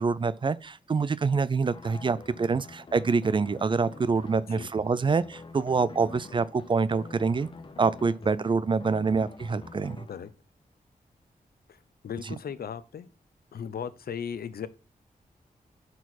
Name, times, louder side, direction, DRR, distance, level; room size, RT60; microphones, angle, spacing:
voice 1, 0.0-7.5 7.8-10.0 12.2-12.3, right 4 dB, 35° right, 0.4 m, -26 dB
sound 1, 1.7-10.3, left 3 dB, 35° left, 0.7 m, -47 dB
voice 2, 12.0-13.1 13.5-14.7, left 7 dB, 85° left, 0.6 m, -36 dB
10.5 x 4.6 x 4.1 m
wide cardioid pair, 180°, 15 cm